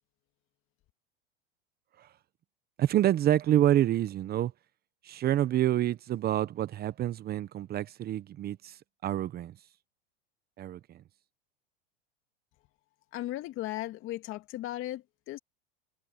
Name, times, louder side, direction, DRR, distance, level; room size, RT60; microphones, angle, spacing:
voice 1, 2.8-4.5 5.0-9.5 10.6-11.0, right 12 dB, 30° right, 1.1 m, -28 dB
voice 2, 13.1-15.4, left 15 dB, 45° left, 2.4 m, -36 dB
supercardioid pair, 120°, 30 cm